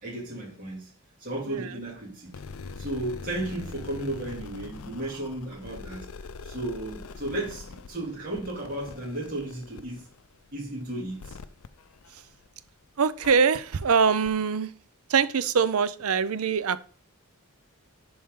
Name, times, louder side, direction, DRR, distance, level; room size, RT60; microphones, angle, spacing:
voice 1, 0.0-0.9 1.2-2.3 2.8-6.1 6.4-10.0 10.5-11.4, right 1 dB, 40° right, 2.6 m, -34 dB
sound 1, 2.3-12.6 13.2-13.3 13.8-13.9 14.2-14.3, left 4 dB, 65° left, 0.5 m, -43 dB
voice 2, 13.0-14.7 15.1-16.8, right 6 dB, 75° right, 0.6 m, -23 dB
11.0 x 4.4 x 3.7 m
head